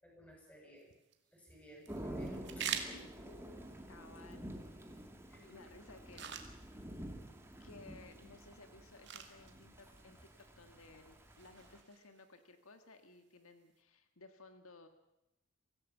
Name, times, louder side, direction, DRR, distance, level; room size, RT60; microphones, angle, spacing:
voice 1, 0.0-0.9 1.3-3.6 5.3-5.6, equal, 5° left, -1 dB, 7.2 m, -57 dB
sound 1, 0.8-13.8, right 8 dB, 55° right, 2.1 m, -49 dB
Thunder / Rain, 1.9-11.8, right 1 dB, 10° right, 2.1 m, -49 dB
voice 2, 3.9-4.6 4.9-5.0 5.3-6.3 6.6-6.9 7.6-14.9, left 3 dB, 75° left, 7 dB, 1.8 m, -58 dB
24.5 x 16.5 x 7.3 m, 0.91 s
head